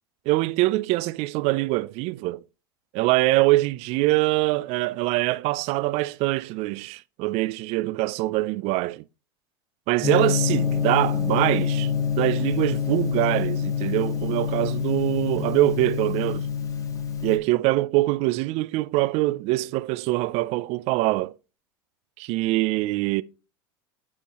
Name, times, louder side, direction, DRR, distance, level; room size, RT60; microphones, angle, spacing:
voice 1, 0.3-2.4 2.9-9.0 9.9-16.5 17.2-21.4 22.2-23.2, right 19 dB, 55° right, 0.4 m, -24 dB
Gong, 10.0-17.4, left 7 dB, 25° left, 1.7 m, -26 dB
11.5 x 4.7 x 2.9 m
hypercardioid pair, 95°, 13 cm